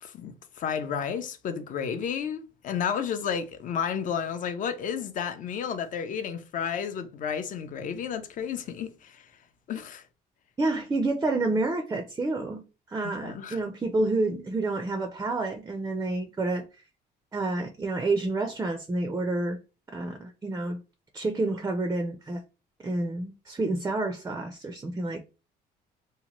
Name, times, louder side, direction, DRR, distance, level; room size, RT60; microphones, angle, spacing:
voice 1, 0.0-9.3 9.7-10.0 13.2-13.6, left 7 dB, 50° left, 0.5 m, -32 dB
voice 2, 10.6-16.7 17.3-19.6 19.9-20.8 21.1-22.4 22.8-25.2, right 2 dB, 15° right, 0.4 m, -29 dB
2.8 x 2.1 x 2.9 m
cardioid pair, 110°, 17 cm